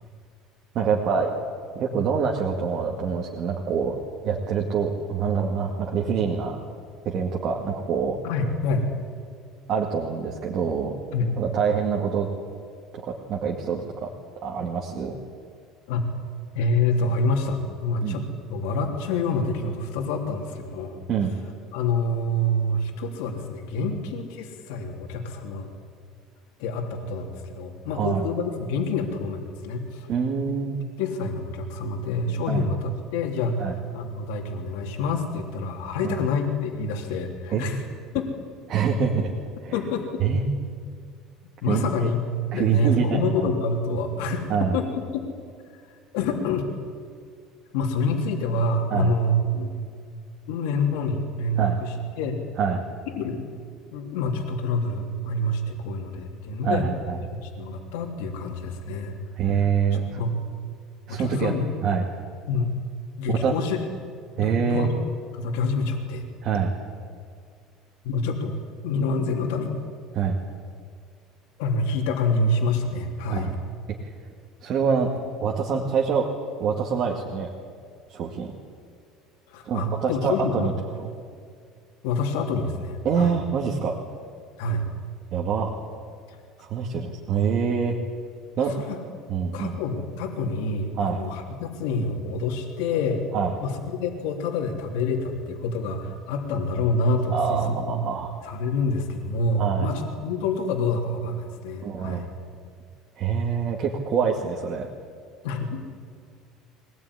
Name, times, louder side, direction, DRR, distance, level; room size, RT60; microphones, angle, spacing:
voice 1, 0.7-1.3 1.7-3.9 4.2-6.6 7.0-8.2 9.7-10.9 11.4-12.3 12.9-14.1 14.4-15.1 18.0-18.2 21.1-21.4 23.9-24.0 27.9-28.3 30.1-30.8 32.5-32.7 33.6-33.7 36.0-36.2 37.5-37.7 38.7-39.3 39.6-39.8 40.2-40.4 41.7-42.1 42.5-43.5 44.5-44.8 48.9-49.1 51.6-51.8 52.6-52.8 56.6-57.2 59.4-60.2 61.1-62.1 63.3-63.5 64.4-64.9 66.4-66.7 70.1-70.4 73.3-73.5 74.0-74.1 74.6-75.1 75.4-76.3 76.6-77.5 78.1-78.5 79.6-80.7 81.0-81.1 83.0-84.0 85.3-85.7 86.6-88.0 88.6-88.7 89.3-89.8 91.0-91.2 93.3-93.6 97.3-98.4 99.6-99.9 101.8-102.3 103.2-104.9, right 6 dB, 35° right, -1 dB, 2.1 m, -25 dB
voice 2, 8.2-8.9 11.1-11.4 15.9-16.1 16.5-18.2 18.5-21.0 21.7-25.7 26.6-30.1 31.0-37.8 38.1-38.3 39.7-40.2 41.6-42.2 42.5-45.0 46.1-46.7 47.7-49.8 50.5-52.4 53.2-53.4 53.9-56.9 57.4-59.2 59.9-60.4 61.1-61.6 62.5-62.7 63.2-63.8 64.4-65.0 65.3-66.2 68.0-68.6 68.8-69.8 71.6-73.5 79.5-80.7 82.0-83.3 84.6-84.8 86.3-86.4 88.5-89.0 89.5-93.2 93.6-98.0 98.4-102.3 105.4-105.8, left 2 dB, 90° left, 2 dB, 3.2 m, -27 dB
23.0 x 18.5 x 10.0 m, 2.1 s
cardioid pair, 180°, 0 cm